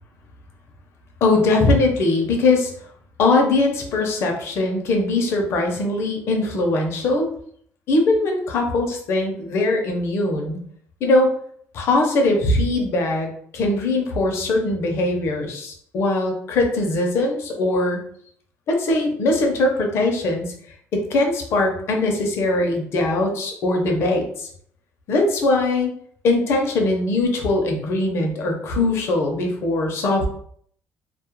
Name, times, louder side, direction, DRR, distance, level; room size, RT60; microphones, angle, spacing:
voice 1, 1.2-2.7 3.2-7.3 7.9-10.6 11.0-11.3 11.7-13.3 13.5-18.0 18.7-20.5 20.9-24.5 25.1-25.9 26.2-30.3, left 2 dB, 60° left, 2 dB, 0.6 m, -21 dB
2.3 x 2.0 x 3.0 m, 0.63 s
cardioid pair, 125°, 5 cm